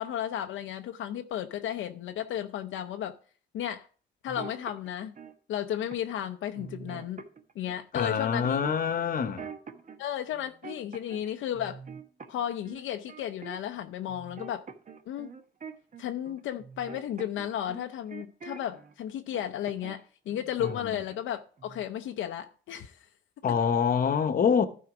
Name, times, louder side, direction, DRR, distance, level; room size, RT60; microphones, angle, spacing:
voice 1, 0.0-3.2 3.5-3.9 4.2-5.1 5.5-7.2 7.6-8.6 10.0-11.8 12.3-14.7 15.1-15.3 16.0-23.1, left 10 dB, 75° left, 0.6 m, -34 dB
sound 1, 4.3-5.3 5.9-6.2 6.5-7.8 8.4-10.0 10.3-11.3 11.5-13.8 14.1-18.9 19.3-20.0 20.3-21.3 21.6-21.8, right 5 dB, 40° right, 1.1 m, -45 dB
voice 2, 7.9-9.4 20.6-20.9 23.4-24.7, left 7 dB, 45° left, 1.0 m, -26 dB
12.0 x 4.7 x 4.8 m
cardioid pair, 90°, 20 cm